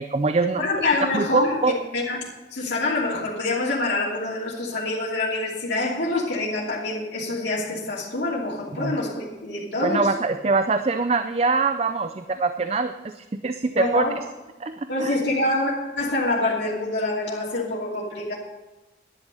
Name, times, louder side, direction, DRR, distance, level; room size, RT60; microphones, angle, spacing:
voice 1, 0.0-0.7 1.1-1.7 8.8-9.0 9.8-14.0 14.6-15.2, right 3 dB, 35° right, 9 dB, 0.4 m, -23 dB
voice 2, 0.6-1.6 1.9-10.1 13.8-14.2 14.9-18.3, left 2 dB, 75° left, -6 dB, 2.8 m, -26 dB
11.0 x 10.5 x 5.5 m, 1.1 s
head